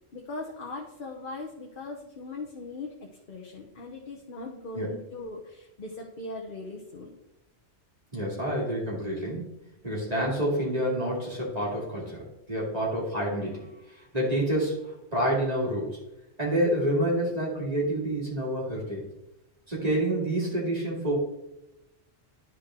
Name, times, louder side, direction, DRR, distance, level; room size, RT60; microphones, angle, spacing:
voice 1, 0.1-2.9 3.3-7.2, left 2 dB, 50° left, 0 dB, 1.1 m, -39 dB
voice 2, 8.1-9.5 9.8-12.2 12.5-13.7 14.1-14.8 15.1-15.9 16.4-19.0 19.7-21.2, right 1 dB, 35° right, -4 dB, 2.3 m, -28 dB
11.0 x 4.6 x 3.7 m, 0.91 s
omnidirectional pair, 1.1 m